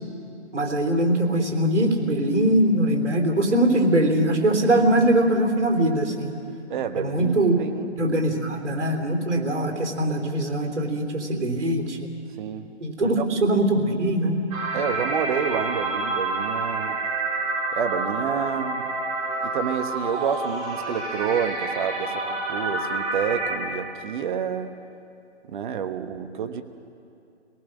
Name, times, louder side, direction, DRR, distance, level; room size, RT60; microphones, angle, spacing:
voice 1, 0.5-6.3 7.0-7.5 8.0-12.0 12.8-14.4, right 1 dB, 85° right, 3 dB, 3.5 m, -22 dB
voice 2, 6.7-8.0 12.4-12.7 13.0-13.2 14.7-17.0 17.7-18.9 19.4-24.8 25.5-26.6, right 7 dB, 45° right, 9 dB, 1.3 m, -29 dB
sound 1, 14.5-23.6, right 2 dB, 20° right, 2.7 m, -28 dB
24.0 x 18.5 x 6.3 m, 2.5 s
hypercardioid pair, 145°, 35 cm